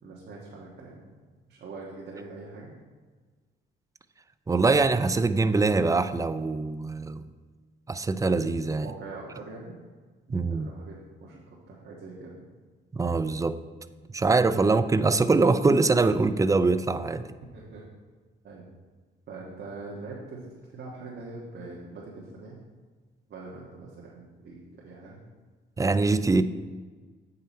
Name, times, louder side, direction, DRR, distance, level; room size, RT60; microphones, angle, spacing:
voice 1, 0.0-0.9 1.5-2.7 8.8-9.8 10.3-12.3 17.5-17.8 18.4-18.6 19.3-22.6 23.3-25.2, right 3 dB, 55° right, -4 dB, 1.5 m, -43 dB
voice 2, 4.5-7.2 7.9-8.9 10.3-10.7 12.9-13.6 14.1-17.4 25.8-26.4, right 3 dB, 15° right, 12 dB, 0.4 m, -23 dB
8.7 x 5.7 x 4.3 m, 1.4 s
cardioid pair, 90°, 20 cm